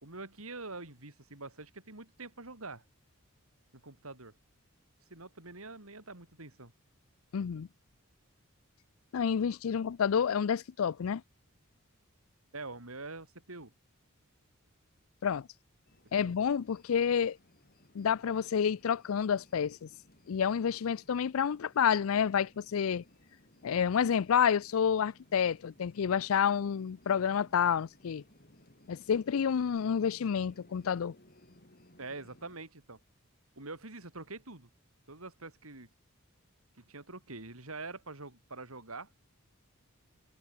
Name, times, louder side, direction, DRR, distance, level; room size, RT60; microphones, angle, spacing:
voice 1, 0.0-2.8 3.8-4.3 5.1-6.7 12.5-13.7 16.2-16.3 32.0-33.0 33.6-34.7 35.1-35.9 36.8-39.1, right 3 dB, 80° right, 5.1 m, -45 dB
voice 2, 7.3-7.7 9.1-11.2 15.2-15.5 16.1-17.4 17.9-19.9 20.3-23.0 23.6-28.2 28.9-31.1, left 7 dB, 70° left, 0.4 m, -29 dB
sound 1, 15.9-32.6, left 1 dB, 45° left, 8.0 m, -62 dB
head